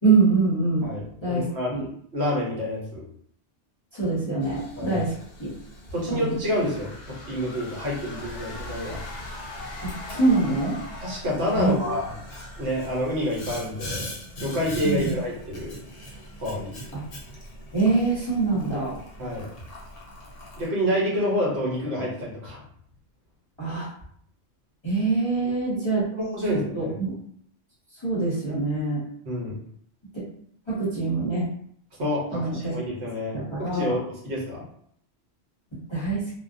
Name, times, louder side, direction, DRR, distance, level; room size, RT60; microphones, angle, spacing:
voice 1, 0.0-0.8 1.2-1.9 3.9-5.1 5.4-5.5 6.1-6.4 10.1-10.8 11.5-12.0 14.8-15.1 16.9-17.0 17.7-19.0 23.6-23.9 24.8-26.0 26.5-27.1 28.0-29.0 30.7-31.5 32.3-32.7 33.3-34.0 35.9-36.2, right 3 dB, 30° left, -9 dB, 0.6 m, -24 dB
voice 2, 0.8-1.7 2.1-3.0 4.8-5.0 5.9-9.0 11.0-12.1 12.6-14.1 14.4-15.8 16.4-16.7 19.2-19.5 20.6-22.6 26.1-26.9 29.3-29.5 32.0-34.6, equal, 65° right, -4 dB, 1.1 m, -28 dB
Boiling, 4.4-20.7, equal, 60° left, 0.8 m, -41 dB
sound 1, 6.5-11.4, left 2 dB, 85° left, 1.0 m, -41 dB
2.3 x 2.1 x 2.5 m, 0.65 s
omnidirectional pair, 1.2 m